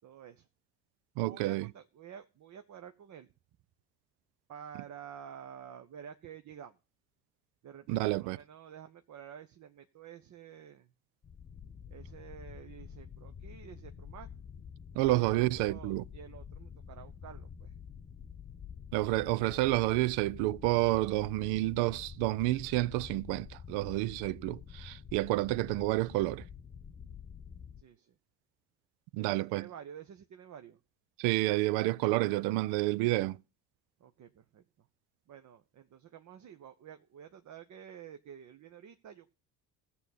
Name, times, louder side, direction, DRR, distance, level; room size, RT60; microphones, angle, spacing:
voice 1, 0.0-0.5 1.2-3.3 4.5-6.8 7.6-10.9 11.9-14.3 15.1-17.7 27.8-28.2 29.2-30.8 34.0-34.9 35.3-39.3, right 8 dB, 40° right, 0.8 m, -50 dB
voice 2, 1.2-1.7 7.9-8.4 15.0-16.0 18.9-26.4 29.1-29.7 31.2-33.4, right 18 dB, 60° right, 0.5 m, -29 dB
sound 1, 11.2-27.8, left 7 dB, 25° left, 1.1 m, -48 dB
16.0 x 7.1 x 4.1 m
hypercardioid pair, 50°, 45 cm